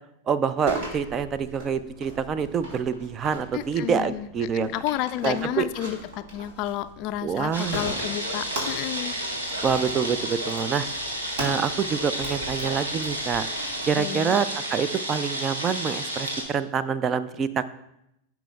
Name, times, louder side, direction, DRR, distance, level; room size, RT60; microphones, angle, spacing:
voice 1, 0.3-4.7 5.2-5.7 7.2-7.8 9.6-10.9 11.4-13.5 13.9-14.5 14.7-17.6, right 7 dB, 25° right, 14 dB, 0.4 m, -26 dB
sound 1, 0.7-13.9, equal, 55° right, 3.3 m, -39 dB
voice 2, 3.5-4.3 4.5-9.1 14.0-14.4, left 12 dB, 40° left, 13 dB, 0.4 m, -31 dB
sound 2, 7.5-16.4, right 1 dB, 70° right, 1.7 m, -31 dB
16.0 x 5.8 x 2.3 m, 0.81 s
figure-of-eight pair, 90°, 0 cm